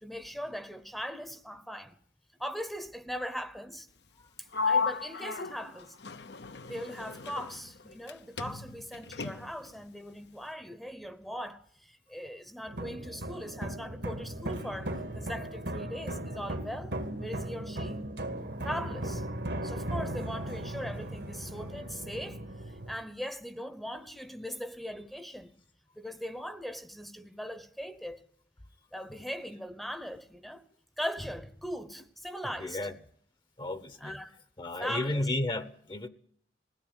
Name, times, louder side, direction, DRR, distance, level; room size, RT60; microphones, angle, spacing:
voice 1, 0.0-1.9 2.4-3.9 4.4-6.0 6.6-16.9 17.2-18.0 18.6-19.3 19.6-25.5 26.0-28.2 28.9-30.6 31.0-32.8 34.0-34.3 34.8-35.3, equal, ahead, 0.9 m, -40 dB
Sliding door, 4.5-8.1 8.4-9.7, left 5 dB, 70° left, 0.9 m, -34 dB
sound 1, 12.7-23.0, right 1 dB, 75° right, 2.1 m, -37 dB
voice 2, 32.4-33.0 33.6-34.2 34.6-36.1, left 2 dB, 30° left, 0.9 m, -33 dB
20.5 x 16.5 x 9.8 m
head